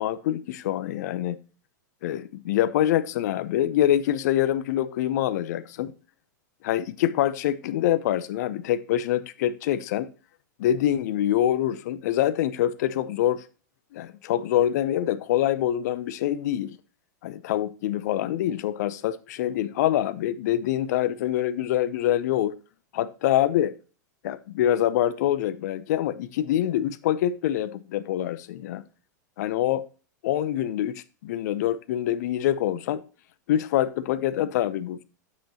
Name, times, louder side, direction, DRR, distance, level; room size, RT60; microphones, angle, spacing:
voice 1, 0.0-1.4 2.0-5.9 6.6-10.1 10.6-13.4 13.9-16.8 17.2-22.6 22.9-23.7 24.2-28.8 29.4-29.8 30.2-33.0 33.5-35.0, left 12 dB, 60° left, 0.7 m, -25 dB
8.4 x 7.7 x 2.9 m
hypercardioid pair, 105°, 10 cm